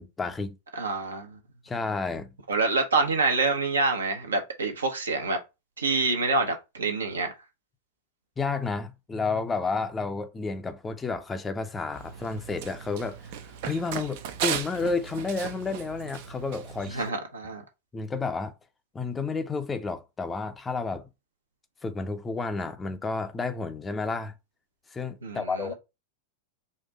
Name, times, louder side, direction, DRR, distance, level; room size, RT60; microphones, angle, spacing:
voice 1, 0.0-0.6 1.6-2.3 8.4-13.3 13.6-17.0 17.9-18.5 18.9-21.0 21.8-24.3 24.9-25.7, left 4 dB, 15° left, 0.6 m, -31 dB
voice 2, 0.7-1.4 2.5-5.4 5.8-7.3 16.9-17.6 25.2-25.7, right 3 dB, 75° right, 1.0 m, -26 dB
Run, 11.9-17.1, right 9 dB, 50° right, 0.6 m, -36 dB
4.3 x 2.5 x 4.0 m
figure-of-eight pair, 90°, 0 cm